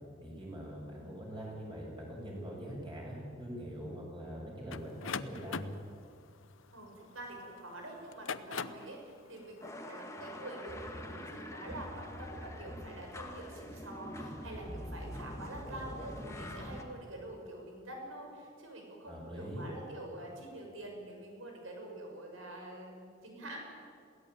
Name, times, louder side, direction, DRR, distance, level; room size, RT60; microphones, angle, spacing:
voice 1, 0.2-5.7 19.0-19.7, equal, 25° right, -2 dB, 7.1 m, -43 dB
sound 1, 4.7-7.4 8.0-8.9, left 5 dB, 70° left, 0.8 m, -40 dB
voice 2, 6.7-23.6, right 1 dB, 75° right, 1 dB, 6.5 m, -46 dB
sound 2, 9.6-16.8, left 1 dB, 15° left, 1.8 m, -44 dB
22.5 x 17.5 x 9.1 m, 2.2 s
head